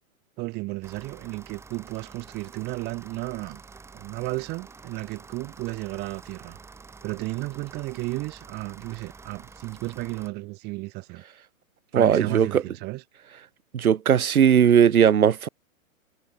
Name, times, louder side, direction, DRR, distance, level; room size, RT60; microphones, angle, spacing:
voice 1, 0.4-3.6 3.9-6.6 7.0-11.2 11.9-13.0, right 22 dB, 25° right, 7.2 m, -33 dB
sound 1, 0.8-10.3, right 4 dB, 5° right, 5.4 m, -48 dB
voice 2, 11.9-12.6 13.7-15.5, right 8 dB, 90° right, 2.4 m, -18 dB
hypercardioid pair, 165°, 42 cm